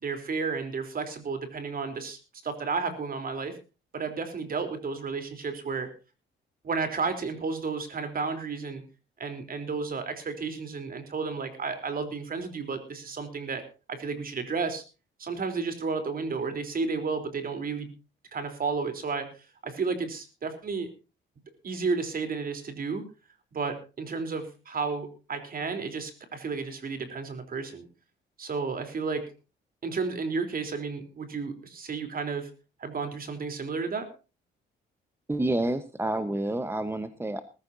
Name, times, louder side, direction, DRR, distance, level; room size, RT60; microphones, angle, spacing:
voice 1, 0.0-2.2 2.4-3.6 3.9-5.9 6.6-8.8 9.2-13.6 13.9-14.8 15.2-17.9 18.3-19.3 19.6-20.9 21.6-23.0 23.5-27.9 28.4-29.3 29.8-32.5 32.8-34.1, right 4 dB, 45° right, 8 dB, 3.6 m, -32 dB
voice 2, 35.3-37.4, right 1 dB, 10° right, 10 dB, 1.1 m, -29 dB
20.0 x 14.5 x 2.7 m, 0.32 s
cardioid pair, 90°, 20 cm